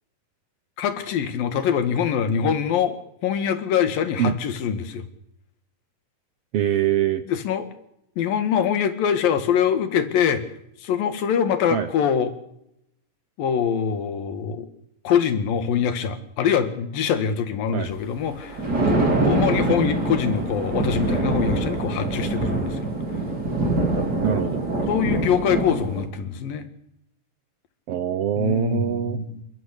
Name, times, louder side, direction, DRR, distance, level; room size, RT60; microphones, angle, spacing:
voice 1, 0.8-5.1 7.3-7.7 8.2-10.4 10.8-12.3 13.4-14.7 15.1-22.9 24.9-26.7 28.4-29.4, left 8 dB, 85° left, 9 dB, 3.5 m, -24 dB
voice 2, 6.5-7.2 11.7-11.9 17.7-17.9 19.7-19.8 24.2-24.6 27.9-29.2, right 10 dB, 80° right, 11 dB, 1.3 m, -23 dB
Thunder, 18.3-26.1, right 2 dB, 30° right, 4.1 m, -24 dB
28.5 x 13.0 x 8.3 m, 0.79 s
omnidirectional pair, 3.9 m